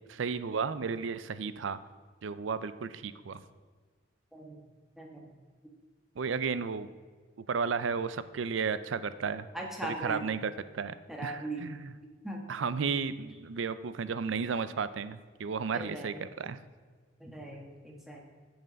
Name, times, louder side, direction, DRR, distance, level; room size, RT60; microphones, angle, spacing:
voice 1, 0.1-1.8 2.2-3.4 6.2-6.9 7.5-9.5 9.8-10.9 11.2-11.9 12.5-16.6, right 5 dB, 85° right, 14 dB, 0.5 m, -33 dB
voice 2, 9.5-10.3 11.1-11.6 12.2-12.4 15.7-16.2 17.2-18.2, right 1 dB, ahead, -1 dB, 1.4 m, -39 dB
8.0 x 7.5 x 5.2 m, 1.5 s
head